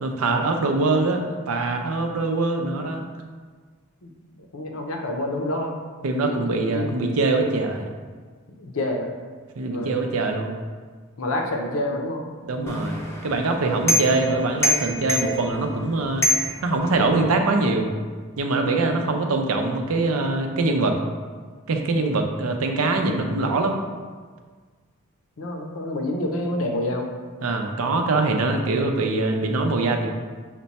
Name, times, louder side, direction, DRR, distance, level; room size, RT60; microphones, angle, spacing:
voice 1, 0.0-3.0 6.0-7.9 9.6-10.5 12.4-16.3 16.6-17.9 18.4-21.0 21.7-23.8 27.4-30.1, right 3 dB, 85° right, 4 dB, 0.5 m, -23 dB
voice 2, 4.0-5.7 6.2-7.0 8.6-9.1 9.6-9.9 11.2-12.3 18.8-19.1 25.4-27.1, left 1 dB, 70° left, 2 dB, 0.6 m, -28 dB
sound 1, 12.7-17.4, left 1 dB, 10° left, 0.5 m, -27 dB
5.8 x 2.2 x 4.1 m, 1.5 s
head